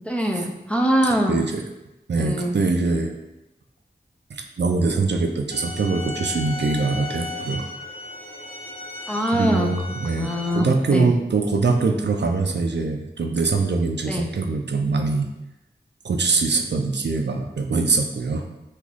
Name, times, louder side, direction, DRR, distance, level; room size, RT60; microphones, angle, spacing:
voice 1, 0.0-1.4 2.2-2.5 9.1-9.7 10.0-11.1 14.1-14.3, equal, 5° left, 1 dB, 0.4 m, -23 dB
voice 2, 1.3-1.6 2.1-3.1 4.3-7.6 9.3-15.3 16.0-18.4, right 3 dB, 80° right, 3 dB, 0.4 m, -23 dB
sound 1, 5.5-10.5, left 2 dB, 35° left, 0.7 m, -35 dB
3.0 x 2.4 x 3.9 m, 0.95 s
wide cardioid pair, 50°, 18 cm